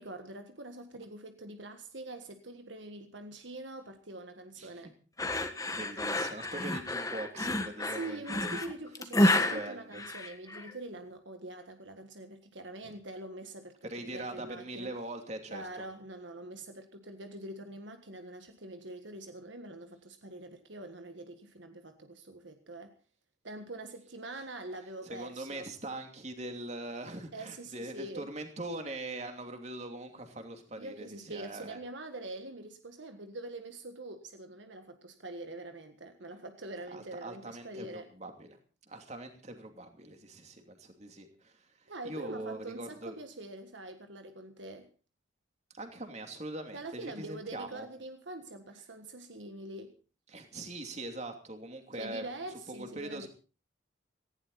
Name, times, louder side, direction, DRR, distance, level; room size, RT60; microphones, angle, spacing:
voice 1, 0.0-4.9 7.9-14.9 15.5-22.9 23.4-25.7 27.3-28.3 30.8-38.1 41.9-44.9 46.7-49.9 52.0-53.3, right 2 dB, 70° right, 6 dB, 1.6 m, -44 dB
sound 1, 5.2-10.7, left 1 dB, 15° left, 1.5 m, -30 dB
voice 2, 5.7-8.5 9.2-10.0 12.8-12.9 13.8-15.6 25.0-31.8 36.9-38.6 38.9-43.2 45.7-47.9 50.3-52.2 52.7-53.3, right 2 dB, 35° right, 5 dB, 2.8 m, -42 dB
18.0 x 15.5 x 4.1 m, 0.35 s
head